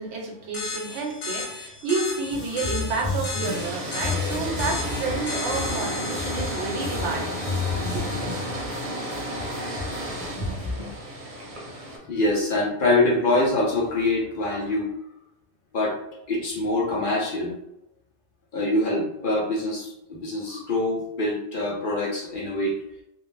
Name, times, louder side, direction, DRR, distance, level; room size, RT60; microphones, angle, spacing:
voice 1, 0.0-7.4 7.9-8.0, right 3 dB, 85° right, 1 dB, 1.0 m, -30 dB
sound 1, 0.5-7.7, left 4 dB, 85° left, 1.0 m, -35 dB
sound 2, 2.3-10.7, left 3 dB, 10° left, 0.5 m, -32 dB
sound 3, 3.4-12.0, right 1 dB, 50° right, 0.7 m, -33 dB
voice 2, 12.1-14.9 15.7-15.9 16.3-17.5 18.5-22.7, left 2 dB, 55° left, -3 dB, 0.7 m, -24 dB
2.5 x 2.0 x 3.1 m, 0.86 s
omnidirectional pair, 1.2 m